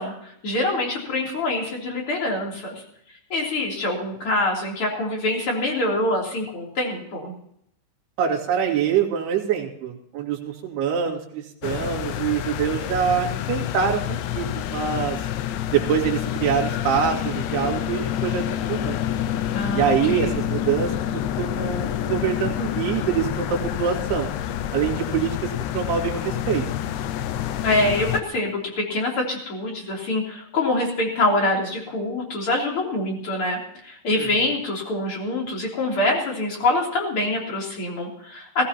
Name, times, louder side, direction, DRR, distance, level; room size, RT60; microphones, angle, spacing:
voice 1, 0.0-2.8 3.3-7.3 19.5-20.4 27.6-38.7, left 2 dB, 30° left, -1 dB, 3.5 m, -25 dB
voice 2, 8.2-15.2 15.7-19.0 19.7-24.3 24.7-25.4 25.7-26.7 34.2-34.3, right 8 dB, 65° right, 0 dB, 3.9 m, -25 dB
sound 1, 11.6-28.2, left 11 dB, 90° left, 3.2 m, -28 dB
19.0 x 16.0 x 2.9 m, 0.72 s
omnidirectional pair, 5.3 m